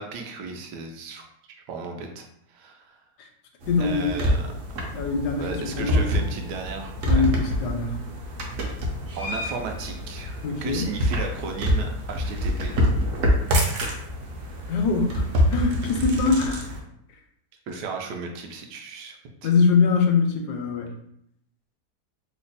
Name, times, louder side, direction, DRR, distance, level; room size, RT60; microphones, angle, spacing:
voice 1, 0.0-3.0 3.8-4.5 5.4-7.2 9.2-12.7 17.7-19.5, right 4 dB, 85° right, 3 dB, 1.2 m, -35 dB
sound 1, 3.6-16.8, equal, 65° right, 1.0 m, -26 dB
voice 2, 3.7-4.1 4.9-5.5 5.8-6.0 7.1-8.0 10.4-10.9 14.7-16.6 19.4-20.9, left 4 dB, 80° left, 4 dB, 1.1 m, -23 dB
3.3 x 2.1 x 3.9 m, 0.75 s
omnidirectional pair, 1.8 m